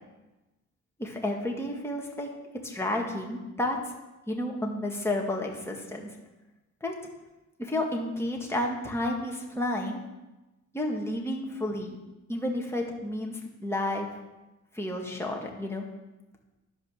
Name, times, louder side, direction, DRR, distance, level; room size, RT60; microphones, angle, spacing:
voice 1, 1.0-2.3 2.6-3.8 4.3-6.1 6.8-6.9 7.6-10.0 10.7-12.0 12.3-14.2 14.7-15.9, left 1 dB, 10° left, 0 dB, 2.0 m, -31 dB
11.0 x 5.0 x 6.5 m, 1.0 s
cardioid pair, 90°, 30 cm